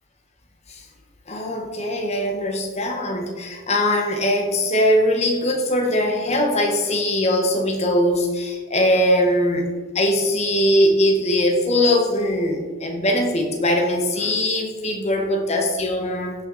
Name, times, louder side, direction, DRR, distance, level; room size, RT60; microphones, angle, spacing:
voice 1, 1.3-16.4, left 1 dB, 30° left, 2 dB, 1.6 m, -21 dB
17.0 x 5.9 x 4.4 m, 1.4 s
head